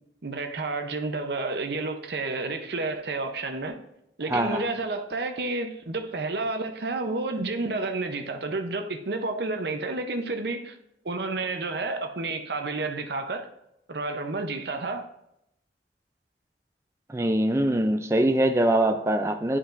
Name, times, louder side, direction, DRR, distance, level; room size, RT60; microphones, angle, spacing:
voice 1, 0.2-3.8 4.2-10.8 11.0-13.5 13.9-15.1, right 3 dB, 70° right, 0.7 m, -30 dB
voice 2, 4.3-4.7 17.1-19.6, right 1 dB, 15° right, 0.4 m, -23 dB
11.0 x 4.8 x 2.6 m
head